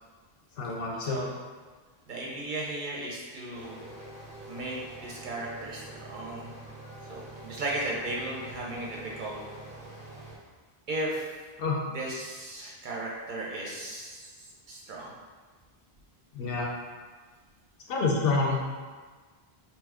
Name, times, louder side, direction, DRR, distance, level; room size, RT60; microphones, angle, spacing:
voice 1, 0.6-1.2 11.6-11.8 16.3-16.7 17.9-18.6, left 3 dB, 70° left, -2 dB, 0.7 m, -27 dB
voice 2, 2.1-3.8 4.5-4.8 5.0-6.5 7.0-9.4 10.9-11.3 11.9-15.1, right 2 dB, 60° right, -3 dB, 0.6 m, -36 dB
sound 1, 3.5-10.4, right 1 dB, 10° right, 0.4 m, -45 dB
2.9 x 2.2 x 3.4 m, 1.4 s
omnidirectional pair, 1.1 m